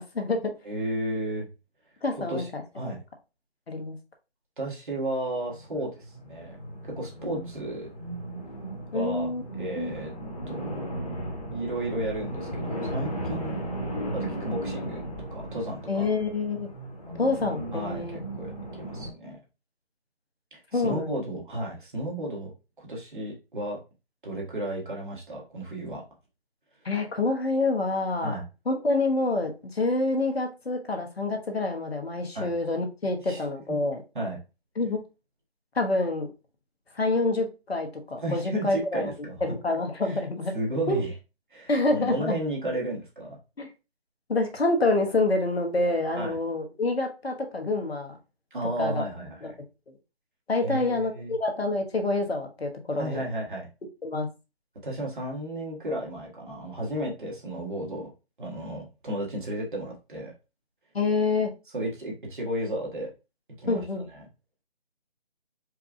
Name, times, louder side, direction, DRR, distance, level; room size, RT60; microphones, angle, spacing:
voice 1, 0.0-0.5 2.0-2.6 3.7-4.0 8.9-9.4 9.8-9.9 15.9-16.7 17.2-18.2 20.7-21.2 26.8-28.3 28.7-34.0 34.8-35.0 35.7-36.3 36.9-39.0 39.4-40.5 40.9-41.0 41.7-42.4 43.6-43.7 44.3-48.2 48.8-49.0 49.4-49.5 50.5-53.2 54.0-54.3 60.9-61.5 63.7-64.0, left 2 dB, 70° left, 5 dB, 1.1 m, -27 dB
voice 2, 0.6-1.5 2.1-2.5 2.7-3.0 4.6-6.6 6.8-7.9 8.9-9.3 9.6-10.1 10.5-10.9 11.5-13.6 14.1-15.0 15.3-16.1 17.7-19.4 20.5-22.5 22.8-23.8 24.2-26.0 28.2-28.4 32.3-32.5 33.2-33.4 34.1-34.4 38.2-39.5 40.0-40.2 40.5-41.1 41.5-43.4 46.2-46.4 48.5-49.5 50.6-51.3 53.0-53.7 54.8-58.1 58.4-60.3 61.7-63.1 63.6-64.3, right 1 dB, 50° right, -2 dB, 1.7 m, -33 dB
sound 1, 5.5-19.1, right 1 dB, 35° left, 1.1 m, -36 dB
4.7 x 2.3 x 3.6 m, 0.29 s
figure-of-eight pair, 160°, 32 cm